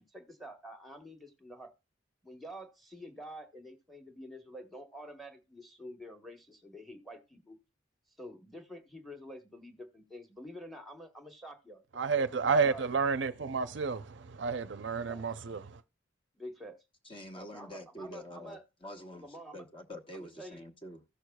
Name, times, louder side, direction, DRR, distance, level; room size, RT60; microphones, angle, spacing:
voice 1, 0.0-1.7 2.2-7.6 8.2-12.8 15.0-15.2 16.4-16.8 17.3-18.6 19.1-19.7 20.1-20.6, equal, ahead, 1.2 m, -48 dB
voice 2, 12.0-15.8, right 5 dB, 65° right, 0.5 m, -30 dB
voice 3, 17.0-19.3 19.5-21.0, equal, 25° left, 1.1 m, -46 dB
16.0 x 6.4 x 2.3 m
head